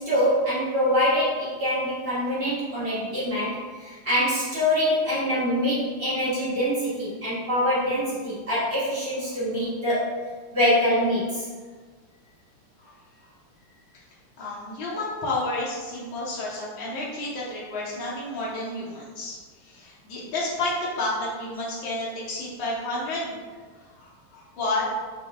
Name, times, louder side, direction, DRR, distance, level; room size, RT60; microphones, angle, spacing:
voice 1, 0.0-10.2 10.5-11.4, equal, 85° right, -11 dB, 0.5 m, -24 dB
voice 2, 14.4-23.4 23.8-24.9, left 2 dB, 85° left, -6 dB, 1.0 m, -31 dB
6.7 x 2.3 x 3.5 m, 1.5 s
omnidirectional pair, 3.3 m